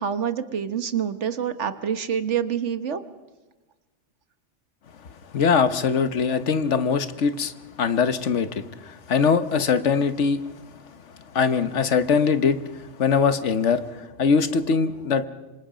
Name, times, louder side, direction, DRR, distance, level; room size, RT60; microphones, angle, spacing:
voice 1, 0.0-3.0, right 8 dB, 75° right, 10 dB, 1.5 m, -26 dB
voice 2, 5.3-7.5 7.8-10.4 11.3-12.6 13.0-15.3, left 5 dB, 75° left, 11 dB, 1.4 m, -22 dB
26.5 x 25.5 x 5.1 m, 1.2 s
omnidirectional pair, 1.2 m